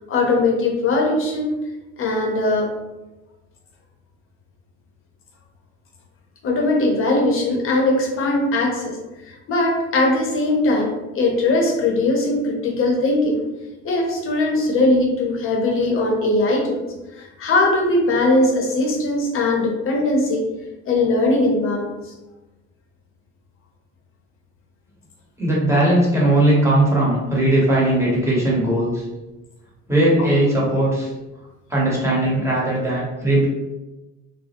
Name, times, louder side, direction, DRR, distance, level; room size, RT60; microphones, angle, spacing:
voice 1, 0.1-1.5 2.0-2.7 6.4-9.0 9.3-13.4 13.8-16.8 17.2-20.4 20.9-21.9, left 2 dB, 45° left, 1 dB, 0.7 m, -20 dB
voice 2, 25.4-29.0 29.9-31.1 31.7-33.5, right 1 dB, 10° right, -6 dB, 0.9 m, -18 dB
2.2 x 2.0 x 2.8 m, 1.1 s
cardioid pair, 100°, 30 cm